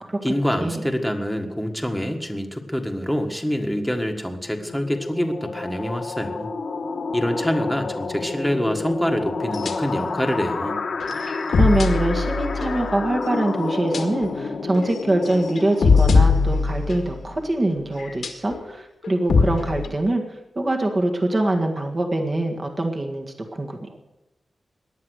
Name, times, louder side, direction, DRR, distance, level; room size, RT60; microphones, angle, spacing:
voice 1, 0.2-6.5 7.1-10.8, equal, ahead, 4 dB, 1.7 m, -25 dB
sound 1, 4.3-16.7, left 4 dB, 65° left, 1.5 m, -30 dB
sound 2, 9.5-10.0 10.5-10.6 11.0-13.0 13.9-14.3 14.7-14.9 15.3-17.3 18.0-18.6 19.0-19.9, left 4 dB, 80° left, 2.1 m, -21 dB
voice 2, 11.1-23.8, right 1 dB, 30° right, 2 dB, 1.8 m, -24 dB
18.5 x 11.0 x 6.5 m, 0.97 s
wide cardioid pair, 115°, 0 cm